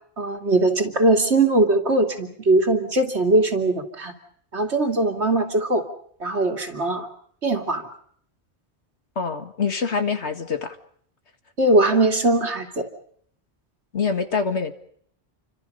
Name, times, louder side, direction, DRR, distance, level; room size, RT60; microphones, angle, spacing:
voice 1, 0.2-4.1 4.5-5.8 6.2-7.1 7.4-7.8 11.6-12.8, right 2 dB, 85° right, 4 dB, 2.9 m, -20 dB
voice 2, 9.2-10.8 13.9-14.7, left 5 dB, 85° left, 8 dB, 2.2 m, -25 dB
29.0 x 25.5 x 5.5 m, 0.64 s
omnidirectional pair, 1.1 m